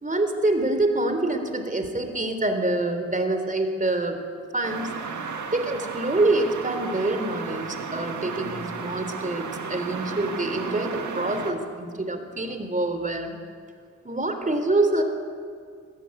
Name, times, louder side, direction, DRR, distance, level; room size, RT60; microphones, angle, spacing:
voice 1, 0.0-4.2 4.5-4.9 5.5-13.4 14.0-15.0, right 2 dB, 25° right, 6 dB, 3.5 m, -26 dB
sound 1, 4.6-11.5, right 5 dB, 80° right, 1.8 m, -34 dB
20.5 x 14.5 x 9.5 m, 2.1 s
cardioid pair, 60°, 29 cm